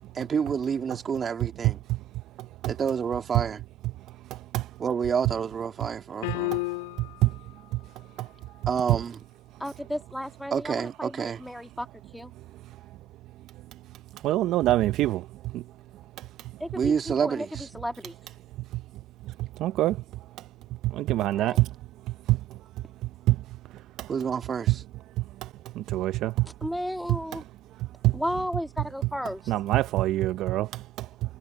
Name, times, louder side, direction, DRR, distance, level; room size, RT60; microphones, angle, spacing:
voice 1, 0.1-1.8 2.6-3.6 4.8-6.6 8.7-9.2 10.5-11.4 16.7-17.7 24.1-24.8, right 7 dB, 25° right, 2.6 m, -28 dB
sound 1, 6.2-7.3, left 25 dB, 65° left, 2.9 m, -31 dB
voice 2, 9.6-11.9 12.1-12.3 16.6-17.5 17.7-18.1 21.3-21.6 26.6-27.4 28.1-29.4, equal, ahead, 1.8 m, -33 dB
voice 3, 14.2-15.2 15.5-15.6 19.6-20.0 20.8-21.7 22.3-22.4 23.3-23.4 24.0-24.1 24.7-24.8 25.4-25.5 25.8-26.5 28.0-28.1 29.5-31.1, right 16 dB, 40° right, 0.6 m, -24 dB
supercardioid pair, 125°, 0 cm